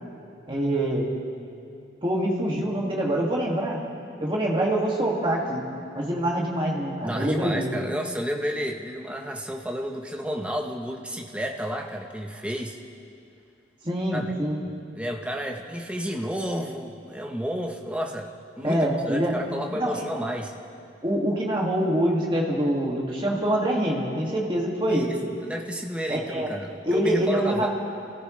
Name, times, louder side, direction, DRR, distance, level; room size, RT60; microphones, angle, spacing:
voice 1, 0.5-1.2 2.0-3.8 4.2-5.6 6.0-7.7 13.8-14.6 18.6-19.4 19.8-20.1 21.0-25.1 26.1-26.5 26.8-27.7, right 1 dB, 25° right, -3 dB, 2.2 m, -25 dB
voice 2, 7.0-12.8 14.1-14.3 14.9-20.5 24.9-27.7, equal, 5° right, 2 dB, 0.9 m, -31 dB
26.5 x 14.5 x 3.3 m, 2.6 s
head